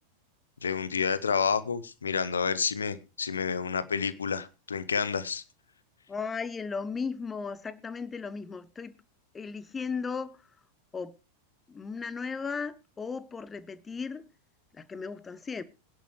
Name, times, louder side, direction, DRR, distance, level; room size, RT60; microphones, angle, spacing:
voice 1, 0.6-5.4, left 6 dB, 70° left, 1.0 m, -29 dB
voice 2, 6.1-8.9 9.3-10.5 10.9-11.2 11.7-14.3 14.7-15.6, left 5 dB, 15° left, 1.0 m, -36 dB
21.5 x 10.5 x 3.2 m
figure-of-eight pair, 90°, 0 cm